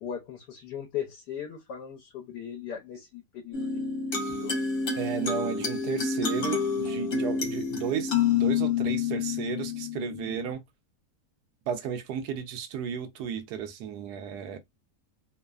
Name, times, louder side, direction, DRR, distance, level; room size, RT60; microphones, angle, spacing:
voice 1, 0.0-4.6, left 9 dB, 80° left, 1.2 m, -39 dB
sound 1, 3.5-10.5, left 6 dB, 50° left, 0.8 m, -28 dB
voice 2, 5.0-10.6 11.7-14.6, right 7 dB, 75° right, 1.1 m, -33 dB
3.1 x 2.0 x 2.2 m
omnidirectional pair, 1.8 m